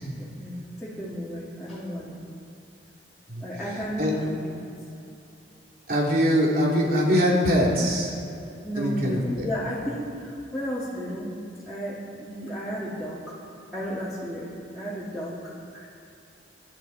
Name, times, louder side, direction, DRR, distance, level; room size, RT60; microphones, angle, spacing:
voice 1, 0.2-2.2 3.4-4.7 8.6-11.3 11.6-13.4 13.7-15.9, equal, ahead, -10 dB, 2.6 m, -33 dB
voice 2, 5.9-8.1 8.8-9.5, equal, 55° right, -3 dB, 3.4 m, -22 dB
25.5 x 11.5 x 4.3 m, 2.8 s
head